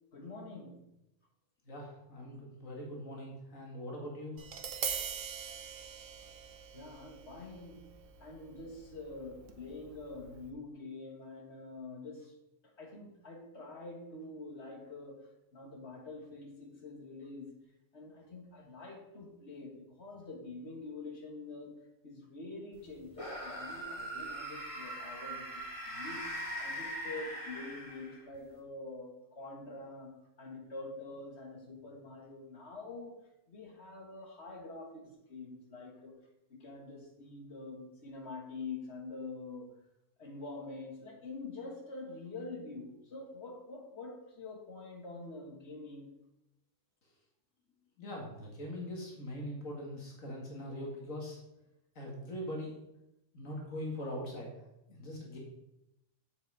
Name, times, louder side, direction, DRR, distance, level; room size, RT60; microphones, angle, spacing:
voice 1, 0.1-0.8 6.7-7.9 8.2-12.3 12.8-17.6 17.9-21.8 22.0-33.2 33.5-36.1 36.5-39.7 40.2-46.2, left 3 dB, 55° left, 1 dB, 2.0 m, -46 dB
voice 2, 1.7-4.4 48.0-51.4 52.0-52.8 53.3-54.5 54.9-55.4, left 1 dB, 80° left, -1 dB, 2.3 m, -42 dB
Tap, 4.4-10.5, right 7 dB, 75° right, 1.3 m, -43 dB
sound 1, 23.1-28.4, equal, 25° left, 2.3 m, -41 dB
8.1 x 7.6 x 4.8 m, 0.87 s
omnidirectional pair, 1.4 m